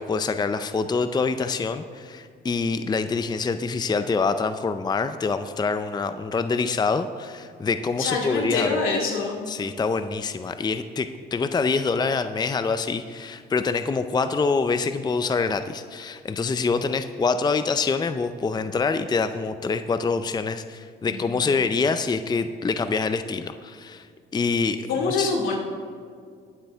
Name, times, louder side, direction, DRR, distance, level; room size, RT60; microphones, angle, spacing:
voice 1, 0.0-8.8 9.5-24.1 24.3-25.3, left 4 dB, 20° left, 10 dB, 0.5 m, -25 dB
voice 2, 8.0-9.4 21.1-21.4 24.9-25.6, left 4 dB, 85° left, 0 dB, 2.4 m, -25 dB
20.5 x 7.7 x 3.5 m, 2.1 s
cardioid pair, 90°, 20 cm